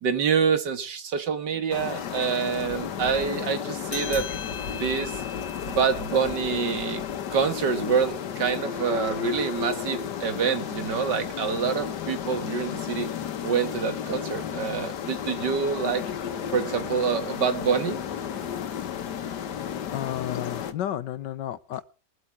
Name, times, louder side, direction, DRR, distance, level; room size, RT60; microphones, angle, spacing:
voice 1, 0.0-4.3 4.7-5.2 5.7-7.0 7.3-13.1 13.4-16.0 16.5-18.0, right 6 dB, 75° right, 2.2 m, -26 dB
sound 1, 1.7-20.7, left 8 dB, 70° left, 1.7 m, -33 dB
sound 2, 3.9-8.8, left 7 dB, 50° left, 1.0 m, -41 dB
voice 2, 19.9-21.8, left 11 dB, 90° left, 1.5 m, -32 dB
21.5 x 8.5 x 4.7 m
omnidirectional pair, 1.9 m